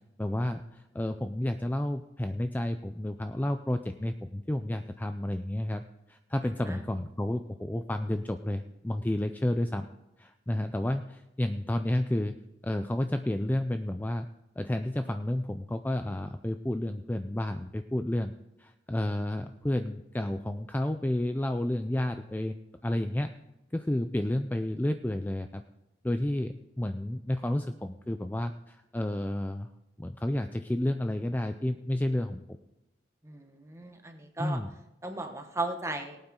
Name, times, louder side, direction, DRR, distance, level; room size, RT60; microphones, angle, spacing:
voice 1, 0.2-9.9 10.2-12.3 12.6-14.3 14.6-18.3 18.6-22.6 22.8-23.3 23.7-25.6 26.0-29.7 30.0-32.4 34.4-34.7, left 1 dB, 10° left, 8 dB, 0.4 m, -31 dB
voice 2, 33.2-34.6 35.0-36.2, right 2 dB, 15° right, 5 dB, 1.1 m, -36 dB
19.0 x 8.8 x 3.7 m, 0.92 s
head